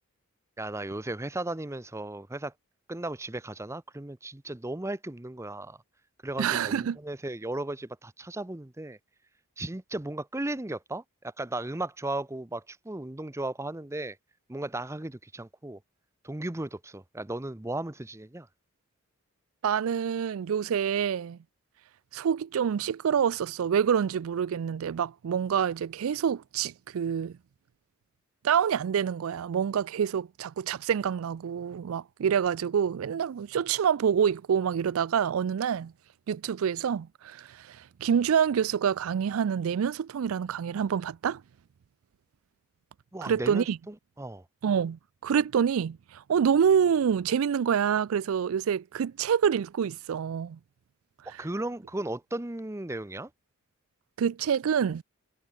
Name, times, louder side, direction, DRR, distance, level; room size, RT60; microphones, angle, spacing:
voice 1, 0.6-2.5 2.9-5.8 6.2-9.0 9.6-14.2 14.5-15.8 16.2-18.5 43.1-44.4 51.3-53.3, right 2 dB, 15° right, 0.7 m, -36 dB
voice 2, 6.4-7.0 19.6-21.4 22.1-27.4 28.4-35.9 36.3-41.4 43.2-43.8 44.6-50.6 54.2-55.0, right 7 dB, 70° right, 0.4 m, -27 dB
head